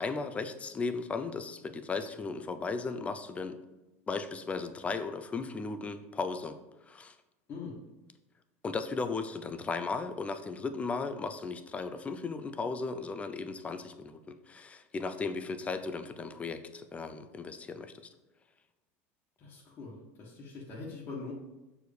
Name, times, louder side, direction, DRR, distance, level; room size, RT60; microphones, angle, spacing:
voice 1, 0.0-3.6 4.1-6.6 6.8-7.2 8.6-18.1, left 4 dB, 20° left, 10 dB, 0.6 m, -36 dB
voice 2, 7.5-7.8 19.4-21.3, left 4 dB, 40° left, -6 dB, 1.6 m, -43 dB
6.4 x 4.8 x 5.1 m, 1.0 s
supercardioid pair, 125°, 7 cm